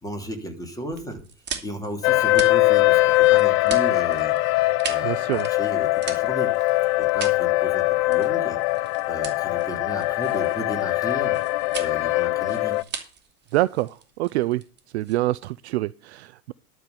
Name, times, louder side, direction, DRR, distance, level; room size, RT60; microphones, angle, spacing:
voice 1, 0.0-1.2 1.6-4.3 4.8-6.5 6.9-8.6 9.1-11.4 11.8-12.7, equal, 5° left, 3.0 m, -34 dB
sound 1, 0.9-15.6, right 7 dB, 20° right, 2.5 m, -39 dB
sound 2, 2.0-12.8, left 19 dB, 35° left, 0.5 m, -22 dB
voice 2, 5.0-5.5 13.5-14.6 14.9-16.5, right 18 dB, 45° right, 0.4 m, -26 dB
11.5 x 6.1 x 6.8 m
hypercardioid pair, 100°, 47 cm